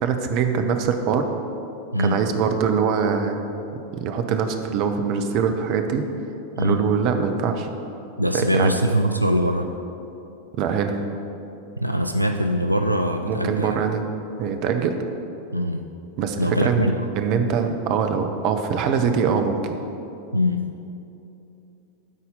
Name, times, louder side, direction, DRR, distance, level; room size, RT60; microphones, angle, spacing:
voice 1, 0.0-1.2 2.0-3.4 3.9-6.0 6.6-7.7 8.3-8.7 10.6-11.0 13.2-14.0 14.4-15.0 16.2-16.9 17.1-19.7, right 6 dB, 40° right, 6 dB, 0.7 m, -23 dB
voice 2, 8.2-9.7 11.8-13.8 15.5-15.8 16.4-17.0 20.3-20.7, equal, 90° right, 5 dB, 0.3 m, -22 dB
12.0 x 4.2 x 5.3 m, 2.9 s
figure-of-eight pair, 90°, 0 cm